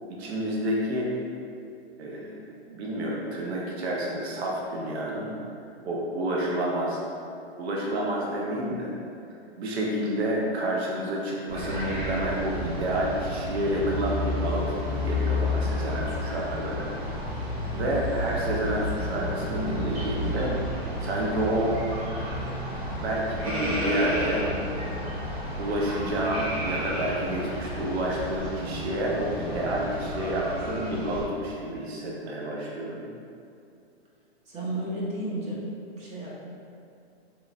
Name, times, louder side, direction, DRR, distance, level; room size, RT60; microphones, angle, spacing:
voice 1, 0.1-1.1 2.0-5.4 5.8-7.0 7.6-8.9 9.6-17.2 17.7-20.6 21.0-21.8 23.0-24.4 25.6-33.1, right 1 dB, 80° right, -3 dB, 0.7 m, -29 dB
sound 1, 11.5-31.2, left 1 dB, 40° right, 1.2 m, -31 dB
voice 2, 34.5-35.6 36.0-36.3, right 1 dB, 20° right, -6 dB, 0.6 m, -32 dB
3.5 x 3.0 x 2.5 m, 2.5 s
hypercardioid pair, 130°, 32 cm